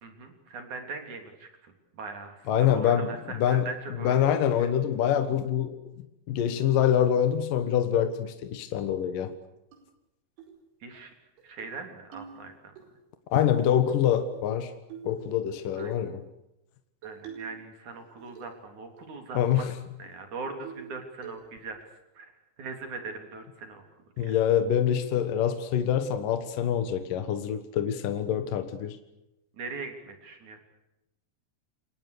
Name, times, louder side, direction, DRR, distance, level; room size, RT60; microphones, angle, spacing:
voice 1, 0.0-4.3 4.6-4.7 10.8-11.1 11.4-12.5 15.8-15.9 17.0-19.7 20.0-21.8 22.1-22.3 22.6-23.8 24.2-24.3 29.6-30.6, right 4 dB, 45° right, 5 dB, 4.5 m, -40 dB
voice 2, 2.5-3.7 4.0-5.8 6.3-9.3 13.3-14.7 15.0-16.2 19.3-19.7 24.2-29.0, left 9 dB, 60° left, 9 dB, 2.5 m, -25 dB
sound 1, 9.7-9.8 10.4-10.6 11.0-11.1 11.4-11.8 12.1-12.9 13.9-14.5 14.9-15.2 15.8-16.0 17.0-17.6 17.9-18.6 19.0-19.1 19.4-19.6 20.0-20.1 20.6-21.0 21.2-21.7, right 8 dB, 90° right, 7.0 m, -45 dB
28.5 x 24.0 x 6.8 m, 0.91 s
omnidirectional pair, 5.3 m